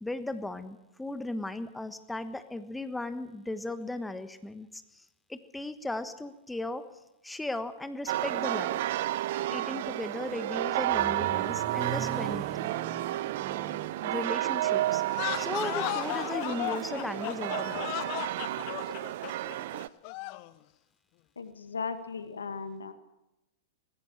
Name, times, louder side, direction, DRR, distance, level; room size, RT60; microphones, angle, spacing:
voice 1, 0.0-6.9 7.2-8.8 9.5-12.4 14.0-15.0 15.4-17.8, left 2 dB, 5° left, 11 dB, 1.3 m, -36 dB
sound 1, 8.1-19.9, right 14 dB, 55° right, 0.7 m, -31 dB
Accelerating revving vroom, 10.3-16.3, right 9 dB, 30° right, 1.4 m, -41 dB
sound 2, 15.1-20.5, left 18 dB, 45° left, 0.8 m, -35 dB
voice 2, 21.4-22.9, left 5 dB, 80° left, 10 dB, 1.9 m, -37 dB
19.5 x 16.0 x 8.9 m, 0.94 s
figure-of-eight pair, 100°, 0 cm